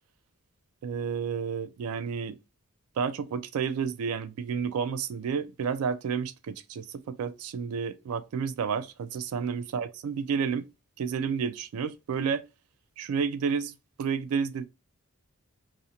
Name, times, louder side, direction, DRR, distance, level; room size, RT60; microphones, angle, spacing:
voice 1, 0.8-2.4 3.0-10.6 11.0-12.4 13.0-13.7 14.0-14.7, right 6 dB, 80° right, 0.3 m, -30 dB
2.4 x 2.1 x 2.7 m
head